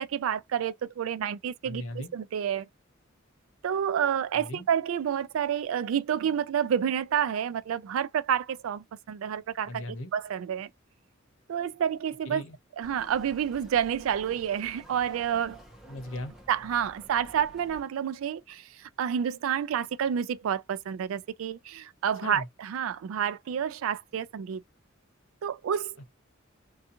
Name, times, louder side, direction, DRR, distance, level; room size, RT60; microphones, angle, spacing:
voice 1, 0.0-1.8 2.1-2.7 3.6-9.8 10.1-10.7 11.5-12.4 12.8-15.6 16.5-24.6 25.4-25.9, right 8 dB, 80° right, 0.3 m, -29 dB
voice 2, 1.6-2.1 4.3-4.7 9.7-10.1 12.3-12.6 15.9-16.3 22.2-22.5, left 1 dB, 70° left, 0.8 m, -38 dB
sound 1, 12.8-17.8, right 1 dB, 5° right, 0.8 m, -51 dB
2.5 x 2.3 x 2.8 m
head